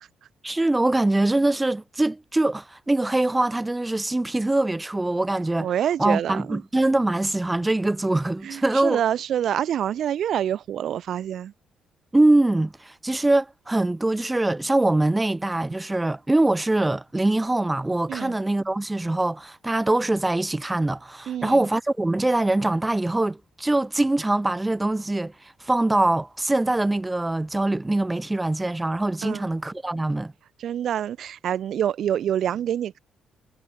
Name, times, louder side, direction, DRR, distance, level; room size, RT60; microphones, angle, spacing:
voice 1, 0.4-5.7 6.0-9.0 12.1-25.3 25.6-30.3, right 2 dB, 15° right, 1.8 m, -23 dB
voice 2, 5.6-6.6 8.4-11.5 18.1-18.3 21.3-21.6 29.2-29.4 30.6-33.0, right 10 dB, 65° right, 0.9 m, -26 dB
cardioid pair, 90°, 0 cm